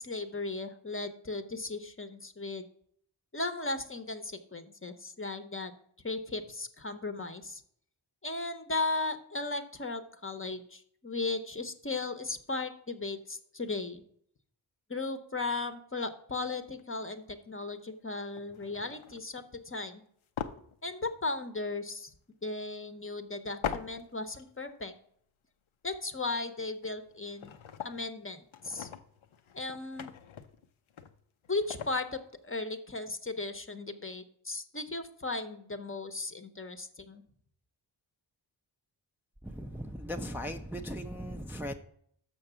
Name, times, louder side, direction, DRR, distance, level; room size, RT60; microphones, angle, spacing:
voice 1, 0.0-2.6 3.3-5.7 6.0-7.6 8.2-14.0 14.9-20.0 20.8-22.1 22.4-24.9 25.8-27.5 27.8-28.9 29.5-30.1 31.5-37.2, left 3 dB, 25° left, 8 dB, 0.8 m, -36 dB
sound 1, 16.6-16.8 17.6-17.8 18.3-19.5 20.4-21.5 21.9-22.0 23.6-24.5 24.7-24.8 26.5-26.6 26.8-28.1 28.5-32.1, left 8 dB, 85° left, 0.7 m, -42 dB
voice 2, 39.4-41.7, equal, 5° right, 4 dB, 0.5 m, -38 dB
6.4 x 6.0 x 6.8 m, 0.66 s
cardioid pair, 55°, 47 cm